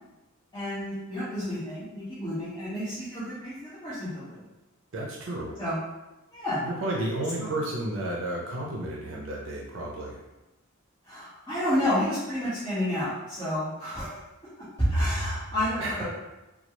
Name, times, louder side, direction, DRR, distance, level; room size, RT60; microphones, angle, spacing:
voice 1, 0.5-4.4 5.6-5.8 6.3-6.6 7.4-7.5 11.0-14.2 14.8-16.0, equal, 15° left, -17 dB, 1.4 m, -30 dB
voice 2, 4.9-5.6 6.6-10.2 15.8-16.0, right 1 dB, 65° right, -2 dB, 0.5 m, -32 dB
4.2 x 2.3 x 3.0 m, 1.0 s
head